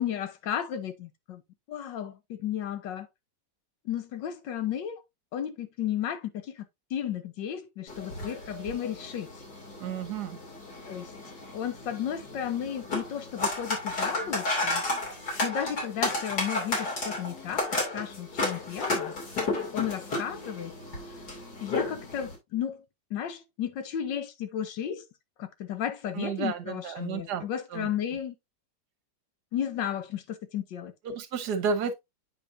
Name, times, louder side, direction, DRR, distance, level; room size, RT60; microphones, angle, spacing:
voice 1, 0.0-1.4 1.7-3.1 3.8-5.0 5.3-6.6 6.9-9.3 10.9-11.1 11.5-14.8 15.4-19.1 19.7-20.7 21.6-22.8 23.1-25.1 25.4-28.3 29.5-30.9, left 9 dB, 75° left, 1.5 m, -33 dB
sound 1, 7.9-22.3, left 2 dB, 60° left, 3.1 m, -33 dB
voice 2, 9.8-10.4 26.2-27.4 27.7-27.9 31.0-31.9, right 6 dB, 65° right, 1.5 m, -31 dB
8.8 x 5.2 x 2.6 m
omnidirectional pair, 2.0 m